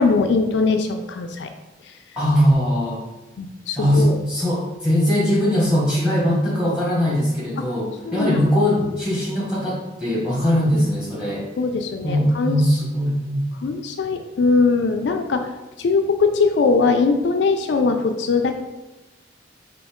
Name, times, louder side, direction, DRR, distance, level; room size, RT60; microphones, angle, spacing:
voice 1, 0.0-1.5 3.4-4.2 8.0-8.4 11.6-12.6 13.6-15.5 15.8-18.5, left 4 dB, 70° left, 6 dB, 0.4 m, -20 dB
voice 2, 2.2-3.0 3.7-11.5 12.0-13.4, equal, 5° right, -6 dB, 1.4 m, -20 dB
5.1 x 2.8 x 3.6 m, 1.1 s
head